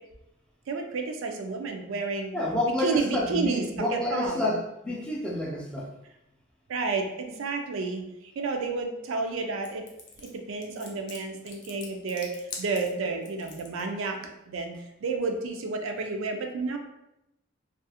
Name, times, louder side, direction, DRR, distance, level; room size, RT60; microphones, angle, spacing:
voice 1, 0.7-2.3 2.6-4.5 6.7-8.0 8.4-9.8 10.2-14.2 14.5-14.7 15.0-16.8, right 4 dB, 75° right, 4 dB, 0.4 m, -31 dB
voice 2, 2.3-5.9, left 1 dB, 5° left, -3 dB, 0.3 m, -29 dB
sound 1, 9.6-13.8, left 4 dB, 60° left, 0.5 m, -43 dB
2.4 x 2.3 x 2.7 m, 0.88 s
head